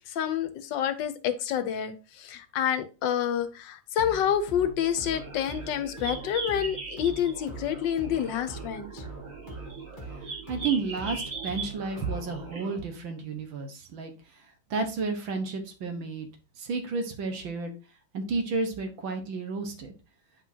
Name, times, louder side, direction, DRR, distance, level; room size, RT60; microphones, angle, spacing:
voice 1, 0.1-9.0, left 9 dB, 75° left, 10 dB, 1.4 m, -28 dB
sound 1, 4.0-12.5, right 3 dB, 25° left, 1.4 m, -43 dB
sound 2, 4.8-12.8, right 4 dB, 45° right, 2.1 m, -40 dB
voice 2, 10.5-14.1 14.7-16.3 16.6-17.7 18.1-19.9, right 4 dB, 80° right, 5 dB, 2.1 m, -31 dB
8.7 x 5.3 x 2.8 m, 0.32 s
omnidirectional pair, 2.1 m